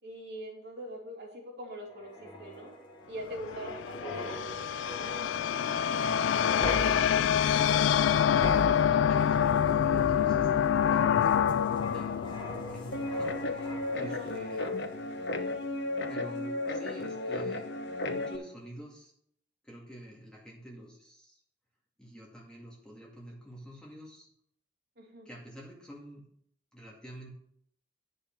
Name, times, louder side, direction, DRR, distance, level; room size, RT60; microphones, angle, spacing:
voice 1, 0.0-2.7 3.1-4.4 13.9-14.9 25.0-25.3, equal, 60° right, -2 dB, 3.0 m, -43 dB
sound 1, 1.9-14.2 14.6-14.8, equal, 25° left, 1.4 m, -41 dB
sound 2, 3.3-13.6, left 8 dB, 90° left, 0.3 m, -26 dB
voice 2, 5.4-7.2 8.3-14.6 16.1-17.7 18.0-19.1 19.6-21.4 22.0-24.3 25.3-26.2 26.7-27.3, right 1 dB, 5° left, -4 dB, 2.1 m, -47 dB
Guitar, 12.9-18.4, left 2 dB, 65° left, 0.9 m, -34 dB
9.9 x 5.4 x 6.1 m, 0.67 s
head